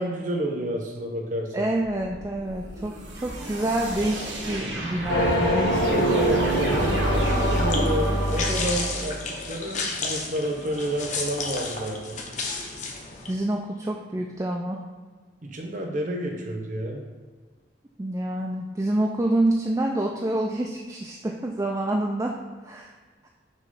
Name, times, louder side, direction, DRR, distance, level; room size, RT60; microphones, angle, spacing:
voice 1, 0.0-1.7 5.7-12.2 15.4-17.0, equal, 45° right, 1 dB, 0.9 m, -30 dB
voice 2, 1.5-5.9 6.2-6.6 13.3-14.8 18.0-22.3 22.6-22.9, right 1 dB, 15° right, 0 dB, 0.4 m, -27 dB
sound 1, 1.9-8.9, right 1 dB, 80° right, 1.3 m, -32 dB
sound 2, 5.1-9.2, equal, 65° left, 1.5 m, -24 dB
sound 3, 7.1-13.3, left 3 dB, 40° left, 0.9 m, -32 dB
6.6 x 3.1 x 5.4 m, 1.4 s
head